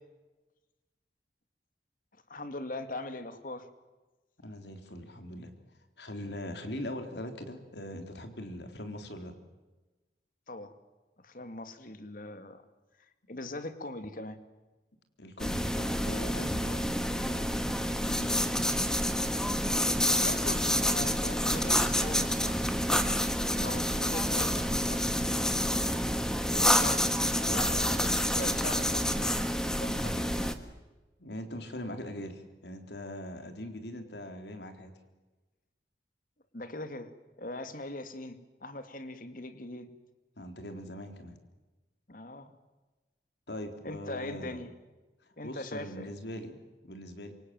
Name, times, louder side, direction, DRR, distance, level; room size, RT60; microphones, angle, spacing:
voice 1, 2.3-3.7 10.5-10.7 11.2-12.6 13.3-14.4 15.6-15.7 20.2-23.3 23.6-25.1 26.5-29.5 29.7-30.6 36.5-37.1 37.4-39.9 42.1-42.5 43.8-44.7 45.4-46.1, left 2 dB, 50° left, 9 dB, 2.2 m, -41 dB
voice 2, 4.4-5.5 6.0-9.3 15.2-16.8 17.1-17.5 17.8-18.7 31.2-34.9 40.4-41.4 43.5-44.6 45.4-46.6 46.8-47.3, left 1 dB, 75° left, 6 dB, 3.9 m, -41 dB
sound 1, 15.4-30.5, equal, 5° left, 1.6 m, -28 dB
27.0 x 25.0 x 7.8 m, 1.2 s
head